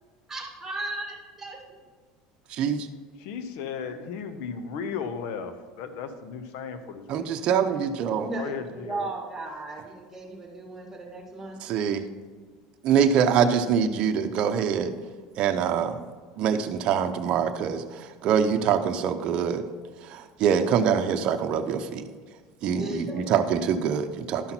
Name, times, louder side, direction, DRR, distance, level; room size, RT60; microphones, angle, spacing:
voice 1, 0.3-1.6 8.2-11.6 22.7-23.3, right 2 dB, 10° right, 1 dB, 2.2 m, -36 dB
voice 2, 2.5-2.9 7.1-8.3 11.6-12.0 12.8-14.9 15.4-16.0 16.4-19.6 20.0-22.0 22.6-24.5, right 7 dB, 50° right, 5 dB, 0.7 m, -24 dB
voice 3, 3.2-7.3 8.3-9.1 22.6-23.5, left 6 dB, 70° left, 9 dB, 1.0 m, -36 dB
11.5 x 5.7 x 4.4 m, 1.5 s
supercardioid pair, 120°, 2 cm